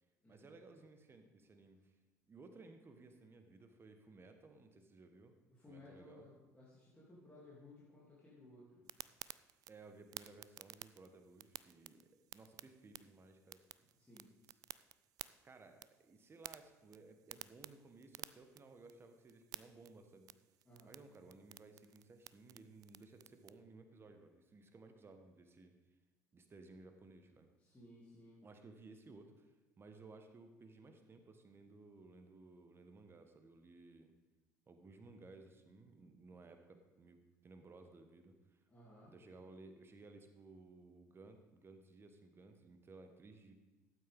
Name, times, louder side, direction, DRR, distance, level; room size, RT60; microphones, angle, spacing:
voice 1, 0.3-1.9 2.3-5.4 5.7-6.3 9.7-13.6 15.4-20.3 20.8-25.8 26.3-27.5 28.4-34.1 34.7-38.6 39.0-43.5, right 3 dB, 30° right, 7 dB, 1.3 m, -58 dB
voice 2, 5.5-8.9 13.9-14.3 20.6-20.9 27.6-28.4 38.7-39.1, left 1 dB, 15° left, -7 dB, 2.8 m, -59 dB
sound 1, 8.9-23.5, right 13 dB, 45° right, 0.3 m, -55 dB
12.5 x 8.9 x 3.6 m, 1.2 s
figure-of-eight pair, 60°, 8 cm